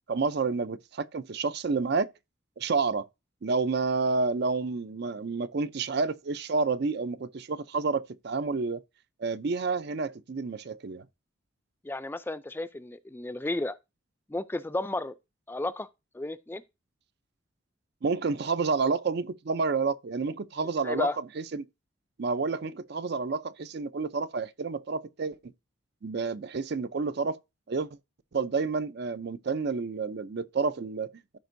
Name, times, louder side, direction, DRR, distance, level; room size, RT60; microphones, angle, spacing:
voice 1, 0.1-2.1 2.6-3.1 3.4-8.8 9.2-11.0 18.0-21.7 22.2-25.5 26.0-27.4 27.7-27.9 28.3-31.4, right 4 dB, 55° right, 0.5 m, -29 dB
voice 2, 11.8-13.7 14.3-15.1 15.5-15.9 16.1-16.6 20.8-21.2, left 2 dB, 10° left, 0.3 m, -32 dB
13.5 x 5.2 x 2.6 m
head